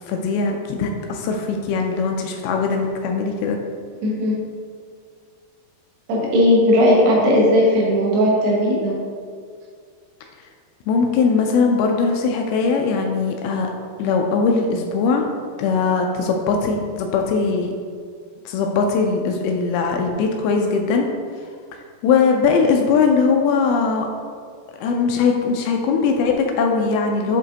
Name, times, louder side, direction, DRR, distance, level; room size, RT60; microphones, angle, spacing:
voice 1, 0.0-3.6 10.9-13.7 14.0-15.3 15.6-17.7 18.5-21.1 22.0-24.1 24.8-27.4, left 5 dB, 80° left, 2 dB, 2.3 m, -20 dB
voice 2, 4.0-4.4 6.1-8.9, equal, 85° right, -3 dB, 3.3 m, -17 dB
7.3 x 5.1 x 2.8 m, 2.1 s
omnidirectional pair, 4.6 m